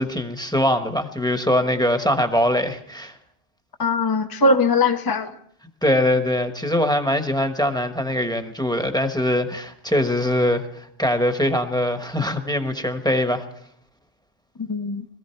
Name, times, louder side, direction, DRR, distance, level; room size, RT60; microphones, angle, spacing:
voice 1, 0.0-3.1 5.8-13.4, left 1 dB, 5° left, 7 dB, 1.0 m, -22 dB
voice 2, 3.8-5.3 14.6-15.1, left 3 dB, 25° left, 6 dB, 0.6 m, -20 dB
21.0 x 14.5 x 4.5 m, 0.68 s
omnidirectional pair, 1.1 m